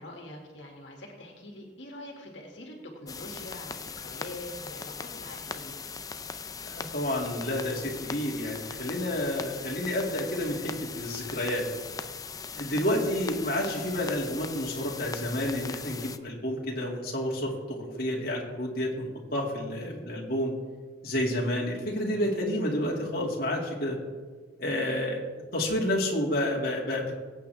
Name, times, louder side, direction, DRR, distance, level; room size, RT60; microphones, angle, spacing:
voice 1, 0.0-5.8 12.7-13.0 19.8-20.1, left 1 dB, 85° left, 0 dB, 2.2 m, -44 dB
sound 1, 3.1-16.2, left 5 dB, 20° left, 0.4 m, -40 dB
voice 2, 6.6-11.7 12.5-20.5 21.0-24.0 24.6-25.2 25.5-27.1, left 1 dB, 55° left, -3 dB, 2.4 m, -30 dB
22.0 x 8.6 x 3.5 m, 1.4 s
head